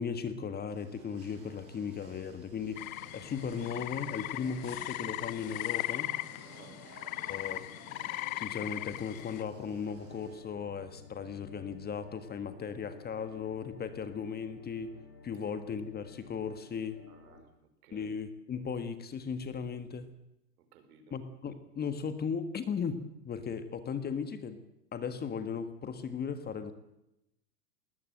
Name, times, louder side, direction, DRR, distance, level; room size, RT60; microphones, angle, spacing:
voice 1, 0.0-6.1 7.3-7.7 8.3-15.0 15.2-17.0 17.9-20.1 21.1-24.6 24.9-26.7, left 6 dB, 20° left, 11 dB, 1.5 m, -37 dB
sound 1, 0.7-10.4, right 4 dB, 30° right, 7.8 m, -55 dB
sound 2, 2.8-9.4, left 18 dB, 60° left, 0.8 m, -38 dB
voice 2, 6.5-6.8 17.1-17.5 17.8-18.1 20.6-21.2, right 6 dB, 70° right, 7 dB, 5.6 m, -57 dB
sound 3, 9.7-17.4, left 5 dB, 85° left, 7.5 m, -54 dB
20.5 x 19.5 x 7.8 m, 0.88 s
hypercardioid pair, 120°, 47 cm